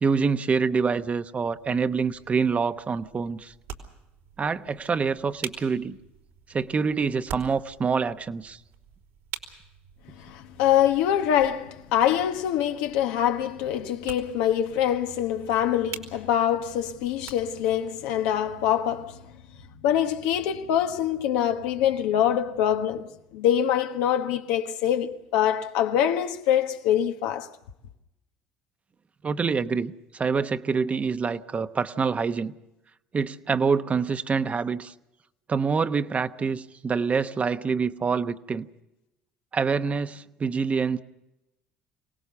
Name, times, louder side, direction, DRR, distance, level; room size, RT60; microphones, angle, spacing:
voice 1, 0.0-3.5 4.4-6.0 6.5-8.6 29.2-32.5 33.1-34.9 35.5-38.7 39.5-41.0, right 5 dB, 30° right, 1.0 m, -26 dB
sound 1, 1.4-17.8, right 9 dB, 85° right, 3.5 m, -46 dB
voice 2, 10.2-19.2 19.8-27.5, left 10 dB, 85° left, 1.4 m, -24 dB
25.0 x 18.0 x 7.0 m
supercardioid pair, 90°, 4 cm